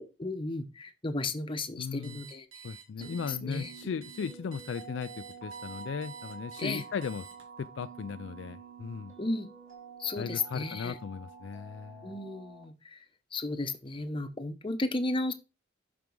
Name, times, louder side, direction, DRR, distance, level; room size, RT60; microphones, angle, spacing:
voice 1, 0.0-2.5 3.0-4.0 6.6-6.8 9.2-9.5 10.0-11.0 12.0-13.0 13.3-15.3, left 2 dB, 25° left, 0.8 m, -34 dB
voice 2, 1.8-2.2 2.6-7.2 7.6-9.1 10.2-12.1, left 6 dB, 65° left, 0.3 m, -37 dB
Alarm, 2.0-7.7, right 7 dB, 85° right, 2.2 m, -50 dB
sound 1, 3.0-12.6, right 5 dB, 35° right, 2.4 m, -48 dB
6.0 x 4.6 x 5.3 m
head